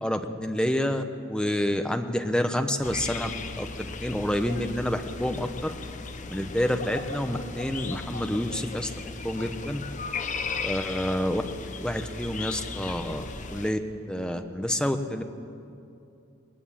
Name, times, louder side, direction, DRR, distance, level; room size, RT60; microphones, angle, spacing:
voice 1, 0.0-3.3 3.6-5.7 6.3-8.9 9.2-9.8 10.6-11.4 11.8-13.8 14.1-15.3, left 1 dB, 5° left, 6 dB, 0.9 m, -28 dB
sound 1, 2.8-13.7, left 4 dB, 35° left, 0.9 m, -36 dB
20.5 x 20.0 x 7.4 m, 2.7 s
head